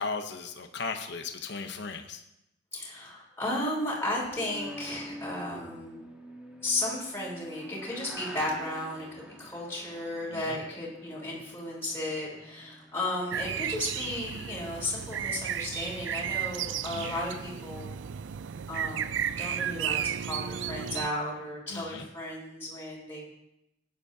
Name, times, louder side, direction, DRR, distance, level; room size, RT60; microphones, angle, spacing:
voice 1, 0.0-2.2 10.3-10.6 16.9-17.2 21.7-22.1, left 4 dB, 65° left, 6 dB, 0.9 m, -36 dB
voice 2, 2.7-6.0 6.6-18.0 18.7-23.3, left 1 dB, 15° left, -6 dB, 3.3 m, -34 dB
sound 1, 4.3-13.8, equal, 5° right, 1.3 m, -46 dB
sound 2, 13.3-21.1, right 9 dB, 75° right, 0.4 m, -33 dB
16.0 x 9.9 x 2.8 m, 0.85 s
head